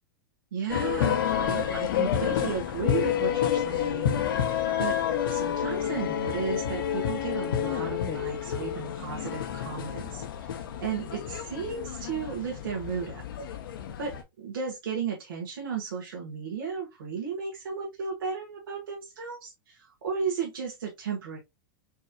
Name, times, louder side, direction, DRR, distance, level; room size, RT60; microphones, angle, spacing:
voice 1, 0.5-4.2 4.8-5.0 5.3-13.2 14.0-21.4, right 6 dB, 85° right, 1.6 m, -34 dB
sound 1, 0.7-14.2, left 9 dB, 75° left, 0.9 m, -29 dB
5.4 x 3.0 x 2.3 m
hypercardioid pair, 135°, 12 cm